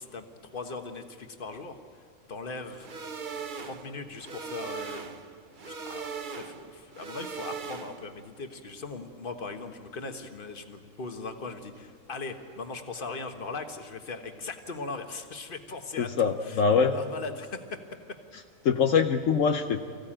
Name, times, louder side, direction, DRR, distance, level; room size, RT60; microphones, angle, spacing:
voice 1, 0.0-1.8 2.3-2.9 3.6-5.1 5.6-17.8, left 3 dB, 40° left, 6 dB, 1.5 m, -39 dB
sound 1, 2.8-8.2, right 5 dB, 40° right, 0.9 m, -39 dB
voice 2, 16.0-16.9 18.6-19.8, left 6 dB, 70° left, 5 dB, 1.2 m, -23 dB
24.5 x 15.5 x 8.9 m, 2.1 s
omnidirectional pair, 1.4 m